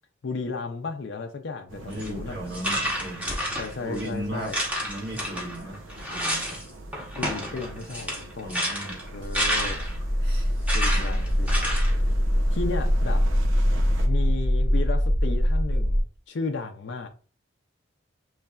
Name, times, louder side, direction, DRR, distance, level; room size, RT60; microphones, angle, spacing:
voice 1, 0.2-2.4 3.6-4.6 7.2-8.5 9.1-9.8 10.7-11.8 12.5-13.2 14.1-17.1, left 4 dB, 65° left, 3 dB, 0.5 m, -34 dB
sound 1, 1.7-14.1, right 2 dB, 85° right, 0.7 m, -43 dB
voice 2, 1.8-4.5 4.8-6.6 8.4-9.0 10.2-10.5 11.1-11.2, right 1 dB, 60° right, -2 dB, 1.6 m, -37 dB
sound 2, 1.9-2.1 2.5-4.1 4.5-6.6 6.9-10.0 10.7-12.0, equal, 10° right, 0.9 m, -30 dB
sound 3, 9.1-16.0, equal, 35° right, 0.7 m, -23 dB
6.6 x 3.2 x 2.3 m, 0.38 s
head